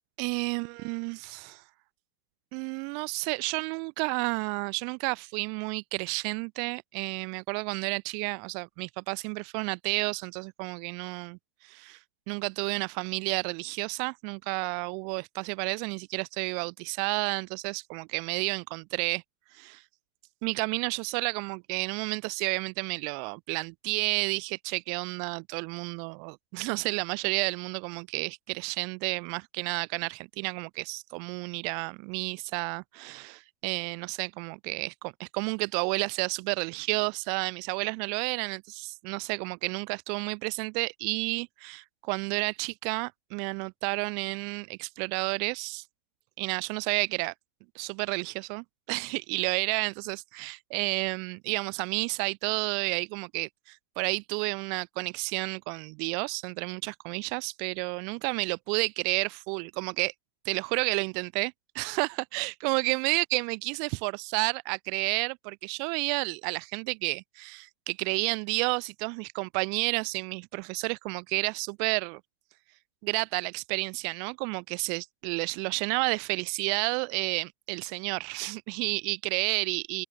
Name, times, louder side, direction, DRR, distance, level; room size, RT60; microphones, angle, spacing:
voice 1, 0.2-1.6 2.5-12.0 12.3-19.2 19.5-19.8 20.4-45.8 46.4-47.3 47.7-60.1 60.4-72.2 73.0-80.0, right 40 dB or more, 45° right, 1.6 m, -31 dB
figure-of-eight pair, 90°, 0 cm